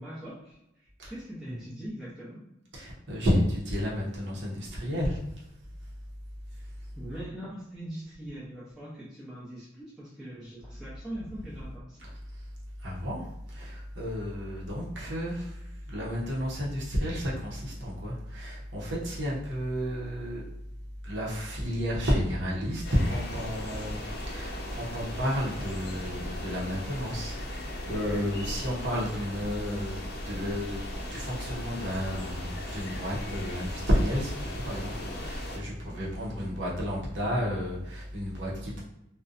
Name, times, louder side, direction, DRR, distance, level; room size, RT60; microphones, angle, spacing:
voice 1, 0.0-2.4 6.5-12.0 35.6-36.0 36.3-36.6, right 1 dB, ahead, -10 dB, 0.6 m, -42 dB
voice 2, 2.7-5.4 12.3-12.4 12.8-20.4 21.0-30.8 31.1-38.8, equal, 80° right, -4 dB, 0.7 m, -31 dB
sound 1, 22.8-35.6, left 1 dB, 60° left, 0.6 m, -38 dB
2.6 x 2.1 x 2.4 m, 0.83 s
head